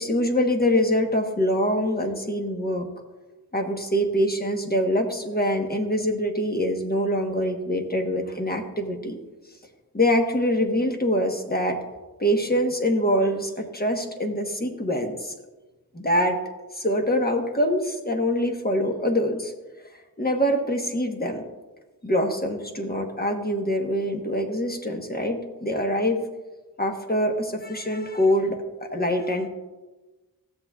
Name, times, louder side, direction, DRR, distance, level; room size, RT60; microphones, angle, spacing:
voice 1, 0.0-2.9 3.5-9.2 9.9-11.8 12.2-15.3 15.9-16.4 16.7-19.5 20.2-21.4 22.0-26.2 26.8-29.5, equal, 25° left, 3 dB, 1.1 m, -24 dB
15.5 x 7.3 x 2.3 m, 1.2 s
wide cardioid pair, 80°, 36 cm